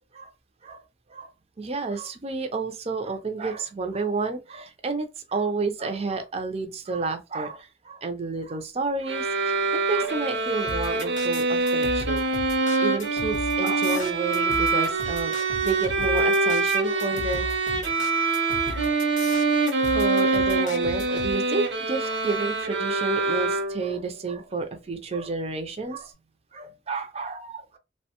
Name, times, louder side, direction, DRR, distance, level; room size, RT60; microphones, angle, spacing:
voice 1, 1.6-9.6 9.9-12.3 12.8-18.1 18.8-19.0 19.9-26.1 26.5-27.8, right 3 dB, 35° right, 0.5 m, -31 dB
sound 1, 9.1-24.0, right 3 dB, 80° right, 0.6 m, -25 dB
sound 2, 10.7-21.3, left 2 dB, 45° left, 0.5 m, -36 dB
2.9 x 2.1 x 2.8 m
head